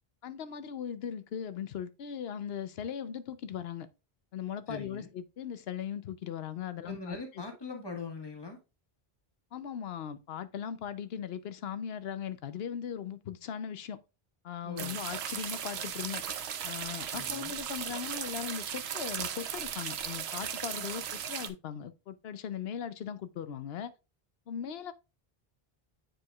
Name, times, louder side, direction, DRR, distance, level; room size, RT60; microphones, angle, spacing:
voice 1, 0.2-3.9 4.3-7.4 9.5-14.0 14.4-16.4 16.6-23.9 24.5-24.9, left 8 dB, 75° left, 0.9 m, -39 dB
voice 2, 4.7-5.1 6.8-8.6 14.6-15.0 17.1-17.5, left 3 dB, 25° left, 1.4 m, -42 dB
sound 1, 14.8-21.5, right 8 dB, 90° right, 0.9 m, -37 dB
8.9 x 4.6 x 2.3 m
omnidirectional pair, 1.0 m